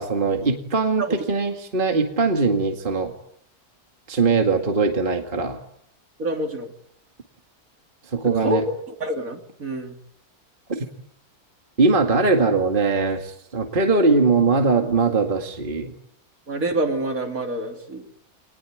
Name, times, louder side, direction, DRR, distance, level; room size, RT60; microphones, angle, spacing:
voice 1, 0.0-3.1 4.1-5.6 8.1-8.6 10.7-10.9 11.8-15.9, right 3 dB, 35° right, 4 dB, 2.2 m, -21 dB
voice 2, 6.2-6.7 8.4-8.6 9.0-10.0 16.5-18.1, right 1 dB, 60° right, 4 dB, 3.6 m, -26 dB
26.5 x 20.0 x 9.1 m, 0.71 s
omnidirectional pair, 1.6 m